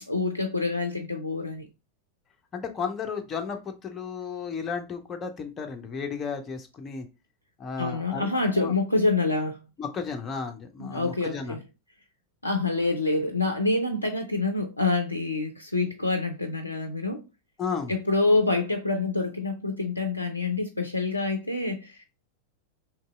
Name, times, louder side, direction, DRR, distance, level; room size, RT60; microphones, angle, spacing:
voice 1, 0.1-1.7 7.8-9.6 10.8-11.6 12.4-17.2 17.9-22.1, left 3 dB, 85° left, 0.3 m, -26 dB
voice 2, 2.5-7.1 7.6-8.7 9.8-11.6 17.6-17.9, left 5 dB, 25° left, 0.5 m, -34 dB
2.9 x 2.7 x 2.3 m
figure-of-eight pair, 90°, 0 cm